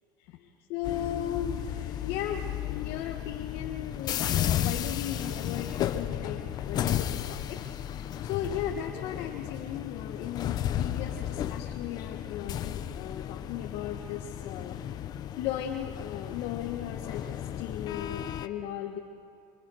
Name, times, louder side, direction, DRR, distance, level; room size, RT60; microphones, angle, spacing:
voice 1, 0.7-7.6 8.2-14.8 15.4-19.0, left 10 dB, 65° left, 2 dB, 1.7 m, -36 dB
sound 1, 0.8-18.5, left 10 dB, 40° left, 1.0 m, -34 dB
27.0 x 26.0 x 6.6 m, 2.3 s
supercardioid pair, 125°, 10 cm